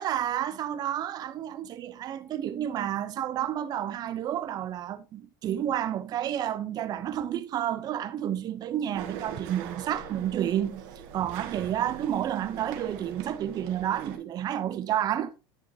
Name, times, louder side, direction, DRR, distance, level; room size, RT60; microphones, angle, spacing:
voice 1, 0.0-10.9 11.1-15.3, right 11 dB, 35° right, 0.7 m, -30 dB
sound 1, 8.9-14.2, right 8 dB, 60° right, 1.8 m, -42 dB
9.8 x 7.4 x 2.7 m
supercardioid pair, 120°, 12 cm